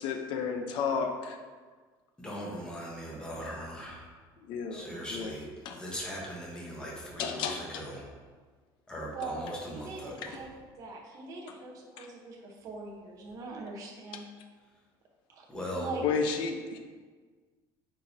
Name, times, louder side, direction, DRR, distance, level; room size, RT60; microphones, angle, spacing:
voice 1, 0.0-1.4 4.5-5.3 5.6-5.8 7.2-7.8 12.0-12.1 16.0-16.8, left 5 dB, 60° left, 4 dB, 0.8 m, -32 dB
voice 2, 2.2-4.0 4.7-8.1 8.9-10.3 15.5-15.9, equal, 10° left, -4 dB, 1.2 m, -40 dB
voice 3, 9.1-10.5 10.8-14.3 15.3-16.0, right 3 dB, 40° right, -2 dB, 1.1 m, -42 dB
8.7 x 5.1 x 2.8 m, 1.5 s
cardioid pair, 170°, 9 cm